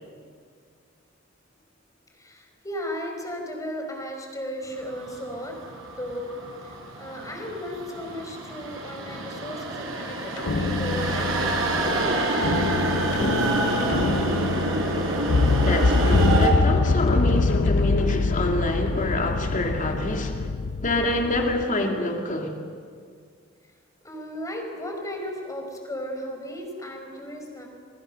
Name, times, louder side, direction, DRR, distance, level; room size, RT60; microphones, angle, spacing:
voice 1, 2.1-5.6 6.0-6.3 6.6-12.5 24.0-27.7, equal, 15° left, 3 dB, 4.8 m, -35 dB
sound 1, 4.8-16.5, right 2 dB, 75° right, 5.3 m, -27 dB
sound 2, 10.4-21.6, left 3 dB, 60° left, 0.6 m, -24 dB
voice 2, 15.6-20.5 20.8-22.6, left 1 dB, 40° left, 2 dB, 2.7 m, -26 dB
28.5 x 23.5 x 6.8 m, 2.1 s
head